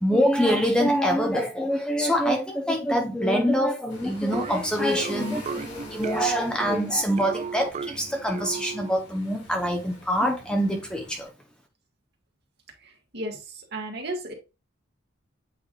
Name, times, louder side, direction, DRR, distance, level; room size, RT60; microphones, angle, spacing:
voice 1, 0.0-11.3, equal, 5° left, 0.8 m, -25 dB
sound 1, 3.9-11.3, left 2 dB, 55° left, 2.7 m, -47 dB
sound 2, 4.3-9.1, right 5 dB, 30° right, 0.3 m, -35 dB
voice 2, 13.7-14.3, right 1 dB, 50° right, 2.0 m, -32 dB
8.4 x 4.8 x 2.5 m
head